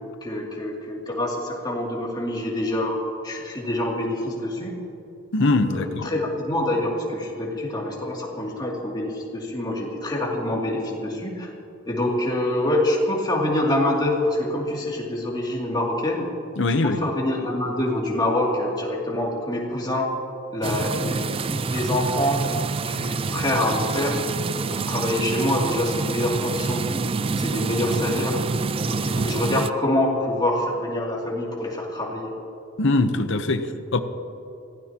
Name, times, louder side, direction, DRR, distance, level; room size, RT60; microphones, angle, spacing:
voice 1, 0.2-3.0 3.2-4.7 5.7-11.5 11.9-16.3 16.8-20.1 20.5-22.4 22.7-24.2 24.5-27.0 27.4-28.4 28.9-32.3 33.6-33.7, left 1 dB, 20° left, -3 dB, 2.7 m, -26 dB
voice 2, 5.3-6.1 16.6-17.0 32.8-34.0, left 2 dB, 65° left, 9 dB, 0.9 m, -22 dB
sound 1, 20.6-29.7, right 4 dB, 25° right, 0.3 m, -27 dB
24.5 x 16.0 x 3.0 m, 2.7 s
head